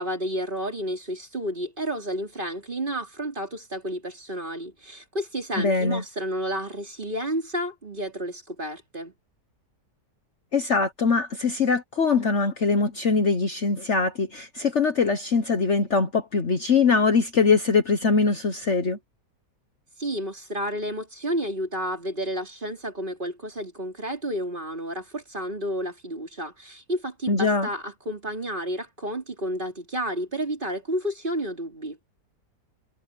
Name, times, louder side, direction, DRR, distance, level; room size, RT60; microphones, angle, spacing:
voice 1, 0.0-9.1 20.0-32.0, equal, 30° right, 3.7 m, -31 dB
voice 2, 5.6-6.0 10.5-19.0 27.3-27.7, left 4 dB, 45° left, 1.4 m, -22 dB
omnidirectional pair, 1.8 m